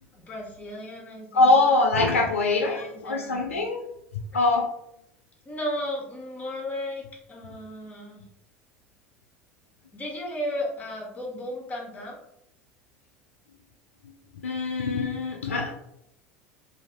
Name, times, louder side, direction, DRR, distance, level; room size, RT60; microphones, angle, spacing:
voice 1, 0.1-1.9 2.2-3.6 5.4-8.2 9.9-12.2, left 1 dB, 20° left, -2 dB, 1.0 m, -35 dB
voice 2, 1.3-3.8 4.3-4.7 14.4-15.7, left 3 dB, 75° left, 2 dB, 0.3 m, -23 dB
2.6 x 2.5 x 2.9 m, 0.79 s
figure-of-eight pair, 70°, 7 cm